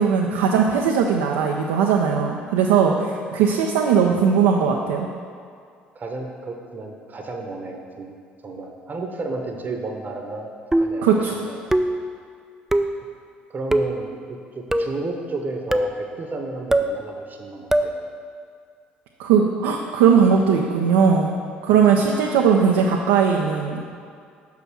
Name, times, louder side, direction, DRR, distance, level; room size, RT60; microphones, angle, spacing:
voice 1, 0.0-5.1 11.0-11.4 19.2-21.3 21.6-23.9, right 6 dB, 70° right, 0 dB, 0.5 m, -19 dB
voice 2, 5.9-8.1 8.4-10.5 10.8-11.1 11.5-11.7 13.5-18.0 21.7-21.8, right 3 dB, 35° right, 3 dB, 0.9 m, -32 dB
sound 1, 10.7-11.1 11.7-12.1 12.7-13.0 13.7-14.0 14.7-15.0 15.7-16.0 16.7-17.0 17.7-18.0, right 1 dB, 5° right, 0.4 m, -21 dB
5.8 x 5.7 x 6.0 m, 2.2 s
figure-of-eight pair, 55°, 5 cm